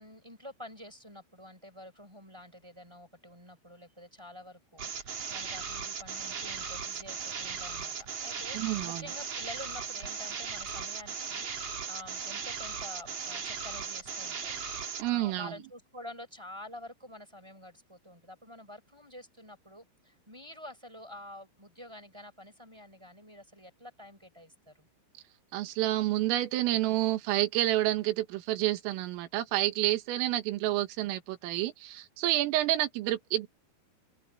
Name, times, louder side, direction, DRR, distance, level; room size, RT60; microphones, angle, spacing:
voice 1, 0.0-14.6 14.9-24.9, left 1 dB, 5° right, 5.4 m, -48 dB
sound 1, 4.8-15.1, right 6 dB, 40° right, 2.4 m, -37 dB
voice 2, 8.5-9.1 15.0-15.5 25.5-33.5, right 15 dB, 80° right, 4.2 m, -29 dB
omnidirectional pair, 5.9 m